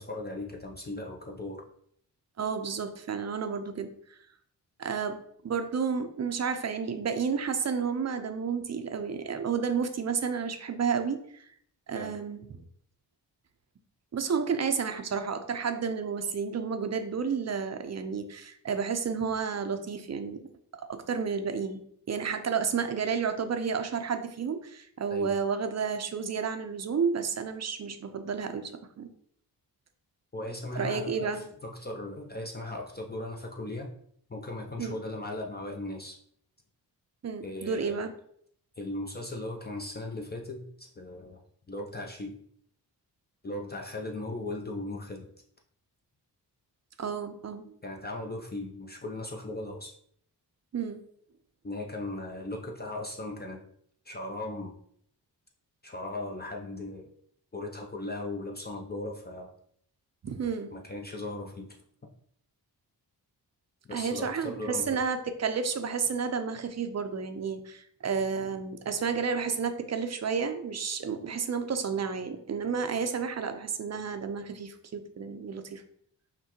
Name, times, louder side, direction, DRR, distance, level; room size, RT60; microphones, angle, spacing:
voice 1, 0.0-1.6 11.9-12.1 25.1-25.3 30.3-33.9 34.3-36.2 37.4-38.0 38.8-41.4 41.7-42.4 43.4-45.3 47.8-50.0 51.6-53.6 54.0-54.8 55.8-57.1 57.5-59.5 60.7-61.8 63.8-64.9, left 2 dB, 25° left, 0 dB, 0.6 m, -37 dB
voice 2, 2.4-3.9 4.8-11.4 11.9-12.4 14.1-20.4 20.9-21.8 22.1-28.7 29.0-29.1 30.8-31.4 34.8-35.0 37.2-38.1 47.0-47.8 50.7-51.0 60.2-60.7 63.9-75.8, right 6 dB, 40° right, 8 dB, 0.6 m, -31 dB
5.6 x 2.2 x 3.0 m, 0.66 s
cardioid pair, 60°, 41 cm